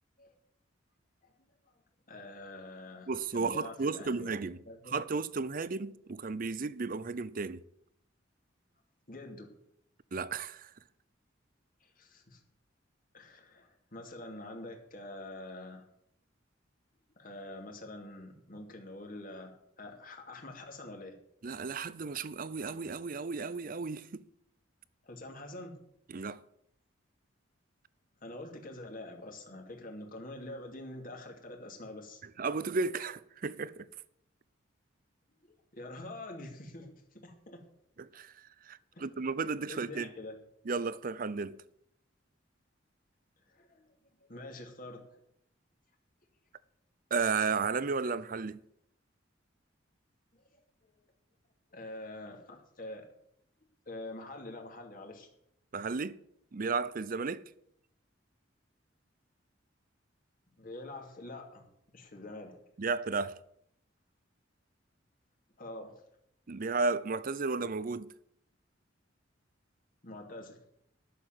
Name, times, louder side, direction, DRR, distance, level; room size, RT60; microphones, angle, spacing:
voice 1, 2.1-4.9 9.1-9.5 11.8-12.4 13.1-15.8 17.2-21.1 25.0-25.7 28.2-32.2 35.4-37.6 38.9-39.0 39.7-40.4 43.5-43.9 44.2-45.0 50.3-50.4 51.7-53.1 53.9-55.3 60.6-61.7 61.9-62.6 65.6-65.9 70.0-70.6, left 2 dB, 45° left, 2.6 m, -46 dB
voice 2, 3.1-4.6 4.9-7.6 10.1-10.7 21.4-24.3 26.1-26.4 32.4-33.9 38.0-40.1 40.7-41.6 47.1-48.6 55.7-56.2 56.5-57.4 62.8-63.4 66.5-68.1, right 4 dB, 45° right, 0.6 m, -34 dB
12.0 x 6.9 x 7.7 m
head